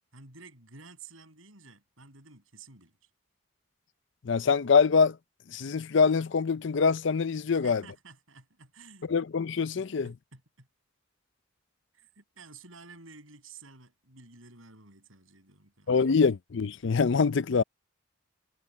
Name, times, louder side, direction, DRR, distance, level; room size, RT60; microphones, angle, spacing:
voice 1, 0.1-3.1 7.5-9.1 9.8-10.7 11.9-16.0, right 4 dB, 85° right, 7.6 m, -52 dB
voice 2, 4.2-5.2 5.5-7.8 9.1-10.1 15.9-17.6, left 5 dB, 65° left, 0.5 m, -24 dB
head